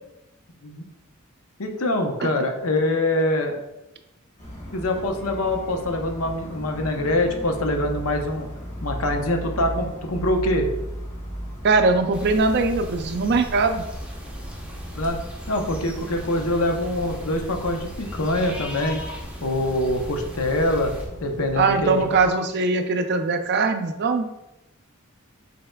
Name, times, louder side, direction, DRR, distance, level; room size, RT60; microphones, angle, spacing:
voice 1, 1.6-3.6 4.7-8.5 8.8-10.7 14.9-15.2 15.5-19.0 19.4-20.9 21.2-22.0, left 1 dB, 75° left, 4 dB, 0.7 m, -24 dB
sound 1, 4.4-22.3, equal, 35° left, 1.2 m, -37 dB
voice 2, 11.6-13.8 21.5-24.3, right 3 dB, 50° right, 8 dB, 0.4 m, -21 dB
sound 2, 12.1-21.1, equal, 5° right, 0.7 m, -37 dB
5.5 x 4.2 x 2.2 m, 0.91 s
head